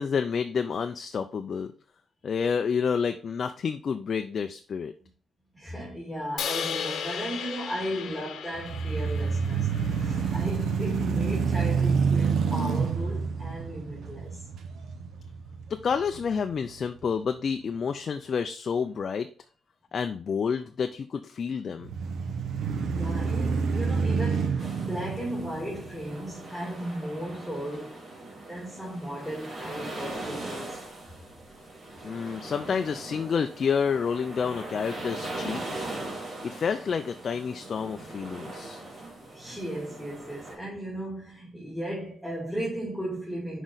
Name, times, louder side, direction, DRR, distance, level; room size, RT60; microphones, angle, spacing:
voice 1, 0.0-1.7 2.2-4.9 15.7-19.3 19.9-21.9 32.0-35.8 36.4-38.8, left 6 dB, 45° left, 0.4 m, -29 dB
voice 2, 5.5-9.7 10.0-14.4 23.0-28.0 28.5-30.9 39.0-43.6, equal, 5° right, 2.7 m, -36 dB
Crash cymbal, 6.4-10.6, left 7 dB, 80° left, 0.9 m, -36 dB
sound 1, 8.5-16.7 17.2-17.3 21.8-26.3, right 5 dB, 75° right, 0.9 m, -28 dB
sound 2, 24.6-40.5, right 2 dB, 45° right, 2.9 m, -40 dB
6.2 x 5.0 x 4.0 m
wide cardioid pair, 155°, 0 cm